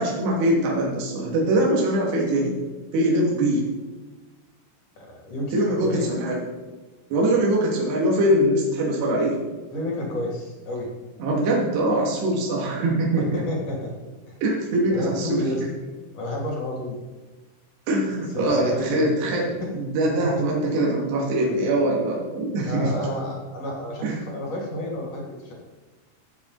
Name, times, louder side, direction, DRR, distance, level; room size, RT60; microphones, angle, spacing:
voice 1, 0.0-2.6 2.9-3.6 5.5-6.4 7.1-9.4 11.2-13.4 14.4-15.4 17.9-22.9 24.0-24.2, right 1 dB, 60° right, -3 dB, 4.4 m, -22 dB
voice 2, 5.0-6.1 9.7-10.9 13.2-13.9 14.3-14.4 14.9-15.6 16.1-17.0 18.0-19.0 19.6-19.7 20.2-20.5 22.7-25.5, left 1 dB, 35° left, -2 dB, 3.1 m, -30 dB
17.5 x 7.4 x 4.2 m, 1.2 s
omnidirectional pair, 5.9 m